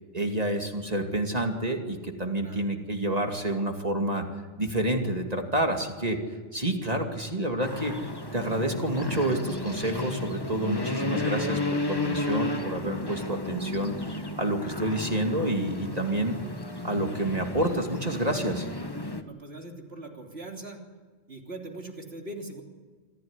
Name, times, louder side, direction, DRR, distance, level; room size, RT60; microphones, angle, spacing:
voice 1, 0.1-4.3 4.6-6.2 6.5-8.0 8.3-16.4 16.8-18.7, right 1 dB, 35° right, 3 dB, 2.5 m, -28 dB
sound 1, 7.6-19.2, left 2 dB, 20° left, 1.4 m, -33 dB
voice 2, 19.2-20.8 21.3-22.6, right 2 dB, 60° right, 2 dB, 3.5 m, -41 dB
26.5 x 15.5 x 9.8 m, 1.4 s
omnidirectional pair, 1.2 m